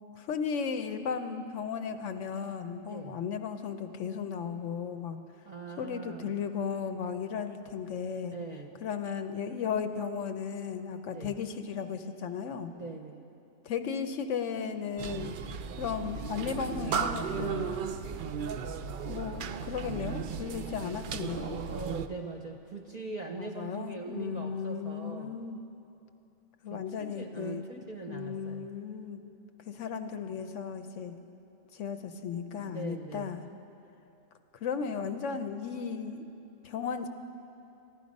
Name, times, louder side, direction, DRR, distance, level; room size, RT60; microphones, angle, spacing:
voice 1, 0.2-5.2 5.8-8.3 8.8-12.7 13.6-15.4 15.8-17.8 19.1-21.6 23.4-25.6 26.6-29.2 29.7-31.1 31.7-33.4 34.6-36.2 36.6-37.1, left 6 dB, 70° left, 8 dB, 0.9 m, -35 dB
voice 2, 5.4-6.5 8.3-8.9 11.1-11.4 12.7-13.3 21.7-25.4 26.7-28.7 32.5-33.5, right 3 dB, 40° right, 2 dB, 0.6 m, -42 dB
sound 1, 15.0-22.1, right 6 dB, 75° right, 0.4 m, -35 dB
15.0 x 11.0 x 5.3 m, 2.8 s
omnidirectional pair, 1.4 m